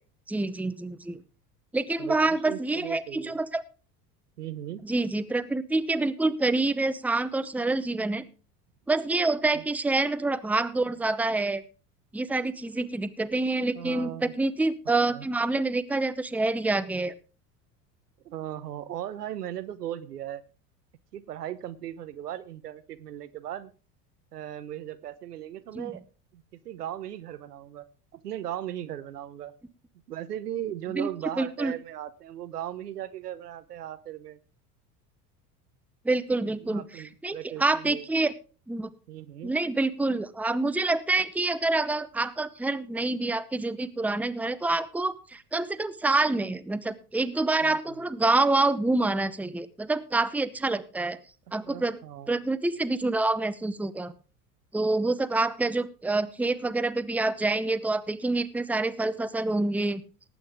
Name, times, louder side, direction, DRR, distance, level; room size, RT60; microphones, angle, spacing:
voice 1, 0.3-1.2 1.7-3.6 4.8-8.2 8.9-11.6 12.1-17.1 25.7-25.9 30.9-31.1 31.4-31.7 36.0-38.3 38.7-38.9 39.4-51.2 51.5-52.0 52.3-54.1 54.7-60.0, right 2 dB, 5° right, 14 dB, 0.8 m, -27 dB
voice 2, 2.0-3.4 4.4-4.8 9.5-9.6 13.7-14.3 14.9-15.3 18.2-20.4 21.1-23.7 24.3-26.0 26.3-27.8 28.1-29.5 30.1-34.4 36.6-38.0 39.1-39.5 47.6-48.0 51.5-52.4, right 11 dB, 80° right, 14 dB, 1.0 m, -37 dB
18.5 x 8.6 x 3.5 m, 0.35 s
hypercardioid pair, 75°, 46 cm